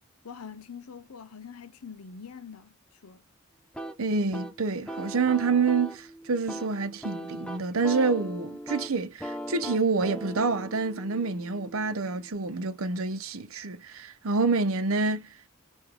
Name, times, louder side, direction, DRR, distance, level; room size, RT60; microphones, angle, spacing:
voice 1, 0.2-2.7 3.0-3.2, left 6 dB, 90° left, 0.7 m, -44 dB
sound 1, 3.7-12.3, right 1 dB, 5° left, 0.4 m, -39 dB
voice 2, 4.0-15.3, right 4 dB, 75° right, 0.7 m, -27 dB
4.9 x 2.5 x 3.5 m
head